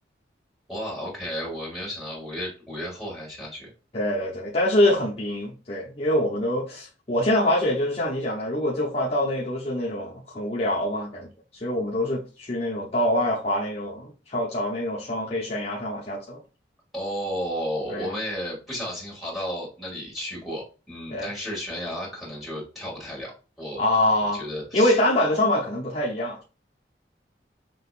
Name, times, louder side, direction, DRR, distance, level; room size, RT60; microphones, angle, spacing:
voice 1, 0.7-3.7 16.9-23.3 23.6-23.8 24.3-25.0, equal, ahead, 2.2 m, -33 dB
voice 2, 3.9-16.4 17.9-18.1 21.1-21.3 23.8-24.4 24.7-26.4, left 1 dB, 35° left, 0.9 m, -25 dB
6.4 x 2.9 x 2.5 m
head